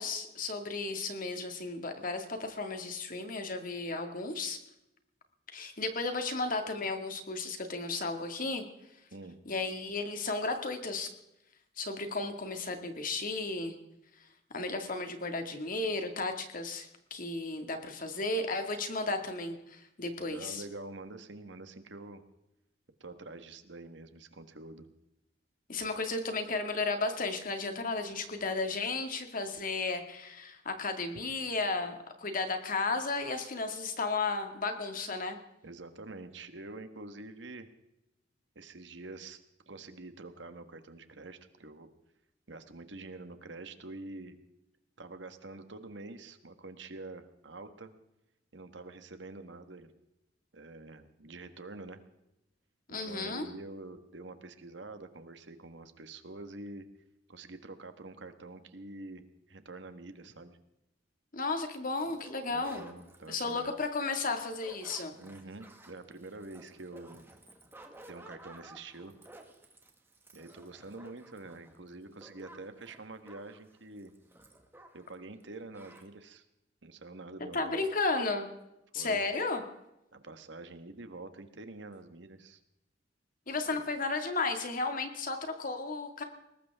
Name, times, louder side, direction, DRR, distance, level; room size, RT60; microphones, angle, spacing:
voice 1, 0.0-4.6 5.5-8.6 9.5-11.1 11.8-13.7 14.5-20.6 25.7-35.4 52.9-53.5 61.3-62.8 63.3-65.1 77.5-78.5 78.9-79.6 83.5-86.2, left 3 dB, 45° left, 5 dB, 2.1 m, -34 dB
voice 2, 20.3-22.2 23.0-24.9 35.6-37.7 38.5-39.4 39.7-41.9 42.5-44.4 45.0-47.9 48.5-49.9 50.5-52.0 52.9-56.9 57.3-59.2 59.5-60.6 62.5-63.7 65.2-67.3 68.1-69.1 70.3-74.1 74.9-76.5 76.8-77.8 78.9-79.2 80.1-82.6 83.7-83.8, right 2 dB, 65° right, 9 dB, 1.5 m, -46 dB
sound 1, 62.0-75.2 75.4-75.5 75.7-76.1, right 1 dB, 10° right, 1.8 m, -54 dB
21.0 x 18.5 x 3.6 m, 0.87 s
head